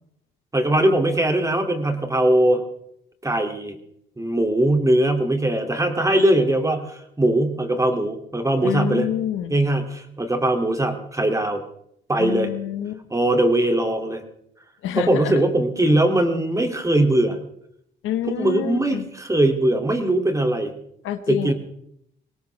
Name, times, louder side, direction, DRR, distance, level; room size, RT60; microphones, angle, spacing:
voice 1, 0.5-2.6 3.2-3.7 4.2-9.1 9.5-11.6 12.1-12.5 13.1-14.2 14.9-17.4 18.3-20.7 21.3-21.5, right 1 dB, 15° right, 5 dB, 2.6 m, -20 dB
voice 2, 8.6-9.6 12.2-13.0 14.8-15.4 18.0-19.1 21.0-21.5, left 11 dB, 90° left, 9 dB, 1.4 m, -27 dB
22.0 x 18.0 x 3.4 m, 0.73 s
cardioid pair, 90°, 20 cm